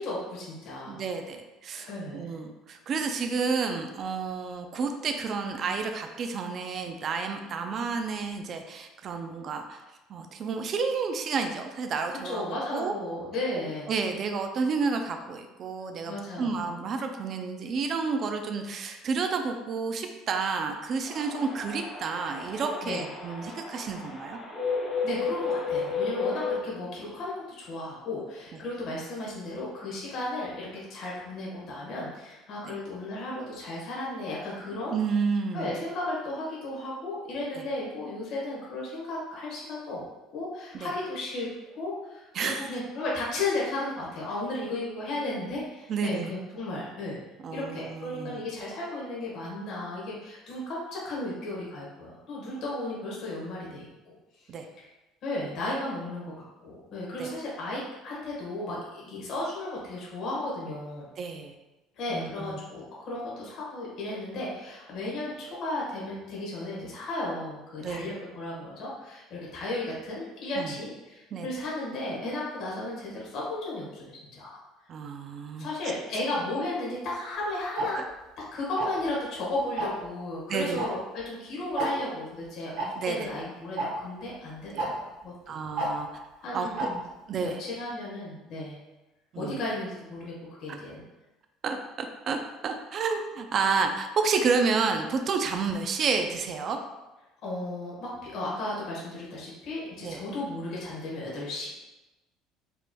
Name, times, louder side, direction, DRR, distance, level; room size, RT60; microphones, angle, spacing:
voice 1, 0.0-1.0 1.7-2.4 12.2-13.9 15.8-16.6 22.8-23.1 25.0-35.0 35.5-40.0 40.3-41.5 41.8-47.2 47.5-54.1 55.2-56.3 56.6-61.0 62.0-74.6 75.6-78.0 78.5-85.5 86.4-87.0 87.4-88.8 89.3-90.3 90.6-91.0 97.4-101.7, left 2 dB, 50° left, -5 dB, 1.3 m, -34 dB
voice 2, 0.9-9.8 10.1-12.9 13.5-24.4 28.5-28.6 32.6-32.8 34.9-35.7 37.6-37.7 40.7-40.9 42.3-42.7 45.9-46.3 47.4-48.4 54.5-54.7 57.2-57.3 61.2-61.5 62.1-62.6 67.8-68.1 70.6-70.8 71.3-71.5 74.9-75.7 77.9-78.0 80.5-80.8 83.0-83.3 84.7-84.8 85.5-86.2 86.5-86.9 87.3-87.6 89.3-89.6 90.7-90.8 91.6-96.8 100.0-100.2, right 5 dB, 35° right, 5 dB, 0.3 m, -30 dB
sound 1, 21.1-26.6, left 4 dB, 25° left, 0.8 m, -33 dB
Tick-tock, 77.8-77.9 78.8-79.1 79.8-80.0 80.8-80.9 81.2-81.3 81.8-81.9 82.8-82.9 83.8-83.9 84.8-84.9 85.8-85.9 86.8-86.9, right 2 dB, 80° right, 1.0 m, -29 dB
5.0 x 3.0 x 2.2 m, 1.0 s
cardioid pair, 165°, 0 cm